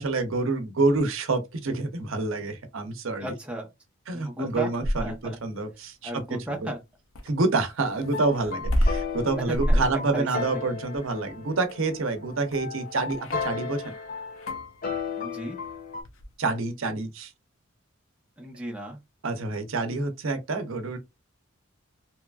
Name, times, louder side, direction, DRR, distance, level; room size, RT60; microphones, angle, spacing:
voice 1, 0.0-3.3 4.1-6.2 6.6-6.7 7.2-14.0 16.4-17.3 19.2-21.0, right 3 dB, 80° right, 0.6 m, -27 dB
voice 2, 3.2-3.7 4.1-4.7 5.0-5.4 6.0-6.8 9.5-9.8 10.1-10.6 15.2-15.6 18.4-19.0, right 1 dB, 5° right, 0.6 m, -34 dB
sound 1, 4.5-5.4 7.1-14.0 14.3-14.7 16.0-16.3, equal, 85° left, 0.6 m, -29 dB
sound 2, 8.0-16.0, left 5 dB, 45° left, 0.5 m, -35 dB
2.9 x 2.3 x 2.3 m
head